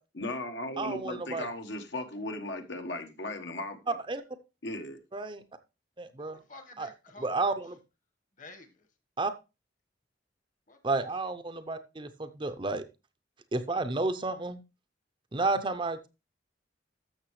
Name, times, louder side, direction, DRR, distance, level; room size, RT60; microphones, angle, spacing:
voice 1, 0.1-4.0 4.6-5.0, left 1 dB, 70° left, 6 dB, 1.3 m, -37 dB
voice 2, 0.8-1.5 4.1-4.2 5.1-5.4 6.0-6.4 6.8-6.9 7.2-7.8 9.2-9.3 10.8-12.8 13.5-14.6 15.3-16.1, right 3 dB, 25° right, 9 dB, 0.6 m, -31 dB
voice 3, 6.2-7.4 8.4-8.9 10.7-10.8 11.1-11.3, left 3 dB, 40° left, 7 dB, 1.4 m, -51 dB
13.0 x 6.6 x 3.2 m, 0.28 s
head